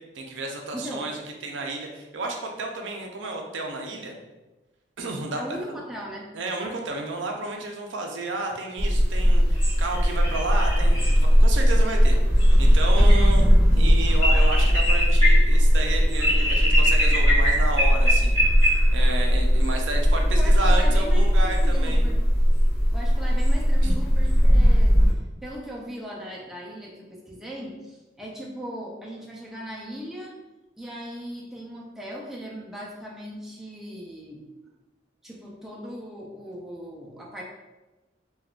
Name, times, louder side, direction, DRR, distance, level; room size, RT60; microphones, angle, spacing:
voice 1, 0.1-1.1 1.4-4.2 5.0-5.4 6.3-13.5 13.8-18.4 18.6-22.1 23.8-24.0, right 2 dB, 85° right, 2 dB, 0.5 m, -32 dB
voice 2, 0.7-1.1 5.4-6.3 20.2-22.2 22.9-25.1 25.4-30.4 30.8-34.4 35.2-37.4, equal, ahead, -4 dB, 0.4 m, -38 dB
sound 1, 8.8-25.1, equal, 25° left, 1.4 m, -18 dB
3.5 x 2.3 x 2.3 m, 1.1 s
head